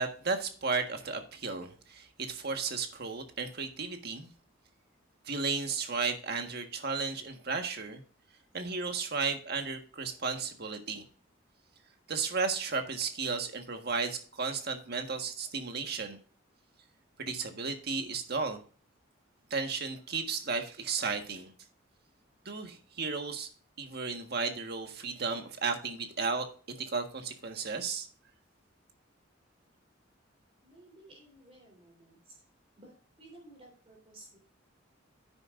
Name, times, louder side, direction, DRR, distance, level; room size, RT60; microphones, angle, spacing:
voice 1, 0.0-4.3 5.2-8.0 8.5-11.0 12.1-16.2 17.2-18.6 19.5-21.5 22.4-23.5 23.8-26.5 26.8-28.1, right 4 dB, 55° right, 6 dB, 1.5 m, -34 dB
voice 2, 30.6-32.2 32.8-34.4, right 1 dB, 30° right, 0 dB, 3.5 m, -55 dB
10.0 x 9.6 x 2.5 m, 0.42 s
head